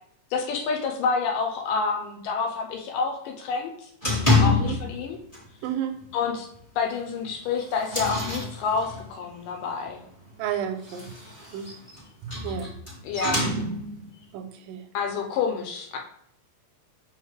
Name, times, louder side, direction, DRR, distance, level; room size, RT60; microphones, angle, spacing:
voice 1, 0.3-5.2 6.1-6.5 6.8-10.0 13.0-13.5 14.9-16.0, left 5 dB, 90° left, 2 dB, 2.5 m, -28 dB
sound 1, 4.0-5.0 5.3-5.7 6.0-6.1 6.5-6.6 7.2-9.2 10.7-14.1, left 3 dB, 20° left, 1.2 m, -27 dB
voice 2, 4.4-4.8 5.6-6.0 10.4-11.1 11.5-11.7 12.2-12.7 14.3-14.8, right 9 dB, 90° right, 7 dB, 2.3 m, -31 dB
5.6 x 5.2 x 3.3 m, 0.71 s
omnidirectional pair, 3.7 m